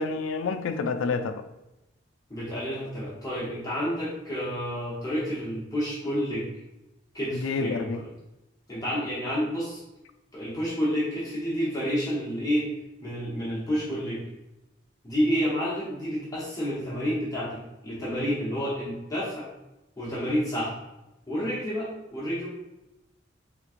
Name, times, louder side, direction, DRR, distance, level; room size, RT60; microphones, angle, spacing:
voice 1, 0.0-1.4 7.3-8.0, left 4 dB, 85° left, 9 dB, 0.3 m, -28 dB
voice 2, 2.3-6.4 7.1-7.9 8.7-9.8 10.3-12.7 13.0-14.2 15.0-19.5 20.0-20.7 21.3-22.5, equal, 20° left, -8 dB, 0.9 m, -29 dB
3.5 x 3.0 x 2.4 m, 0.93 s
head